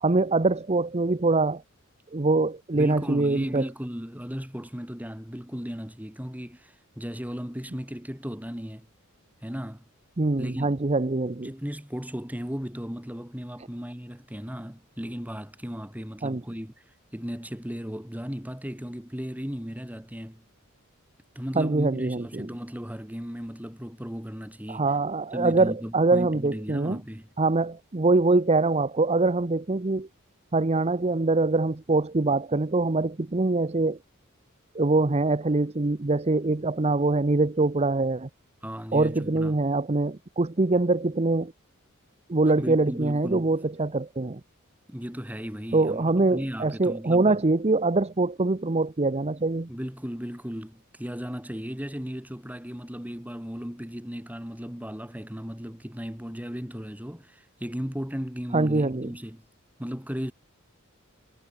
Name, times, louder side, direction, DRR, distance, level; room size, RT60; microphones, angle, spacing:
voice 1, 0.0-1.6 2.1-3.6 10.2-11.5 16.2-16.4 21.5-22.5 24.7-27.0 27.4-30.1 30.5-34.0 34.7-38.3 38.9-41.5 42.3-44.4 45.7-49.7 58.5-59.1, right 3 dB, 30° right, 0.8 m, -24 dB
voice 2, 2.7-8.9 9.4-9.8 10.4-10.8 11.4-16.7 17.1-20.4 21.3-24.9 25.3-27.3 38.6-39.6 42.6-43.5 44.9-47.4 49.7-59.4 59.8-60.3, equal, 10° right, 3.4 m, -36 dB
head